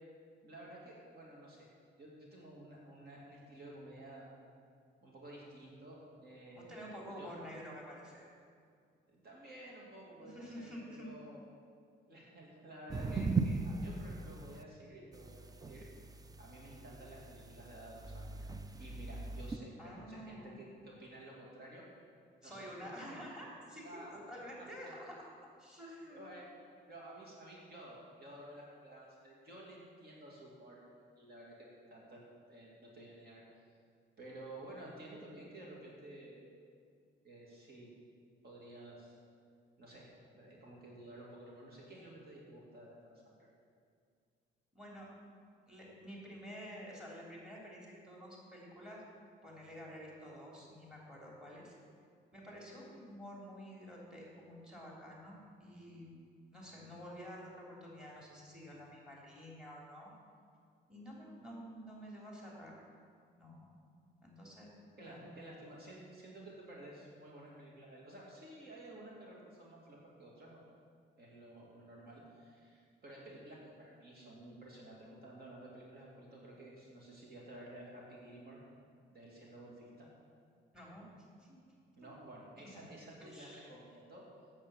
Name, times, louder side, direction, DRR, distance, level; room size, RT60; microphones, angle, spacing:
voice 1, 0.4-1.7 2.0-4.3 5.0-6.8 7.1-7.5 9.1-11.4 12.1-15.9 16.4-18.5 18.8-21.9 22.4-23.3 23.8-24.7 26.1-26.5 26.9-30.8 31.2-32.2 32.5-33.4 34.2-36.5 37.2-37.9 38.4-39.1 39.8-40.1 40.3-43.5 65.0-70.6 71.2-78.6 79.1-80.1 82.0-84.3, right 1 dB, 50° right, -3 dB, 2.5 m, -52 dB
voice 2, 6.5-8.3 10.2-11.1 19.8-20.6 22.4-24.0 24.3-25.3 25.6-26.2 44.7-45.1 45.7-49.0 49.4-51.8 52.3-56.2 56.5-60.1 60.9-62.7 63.3-63.7 64.2-64.7 65.0-65.3 80.7-81.1 81.4-81.5 82.6-82.8 83.2-83.7, equal, 5° right, -3 dB, 3.0 m, -49 dB
sound 1, 12.9-14.6 15.1-19.6, right 4 dB, 20° right, 0.5 m, -39 dB
8.8 x 7.3 x 7.1 m, 2.2 s
cardioid pair, 90°, 20 cm